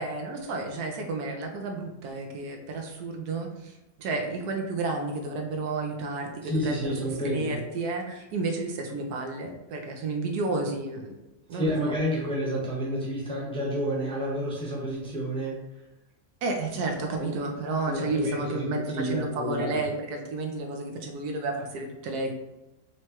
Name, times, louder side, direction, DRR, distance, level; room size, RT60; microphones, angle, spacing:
voice 1, 0.0-11.2 11.5-11.9 16.4-22.3, right 3 dB, 80° right, 2 dB, 1.2 m, -31 dB
voice 2, 6.4-7.6 11.5-15.6 17.2-17.3 17.8-19.8, equal, 5° left, -5 dB, 0.8 m, -30 dB
4.6 x 3.1 x 2.9 m, 0.96 s
omnidirectional pair, 1.7 m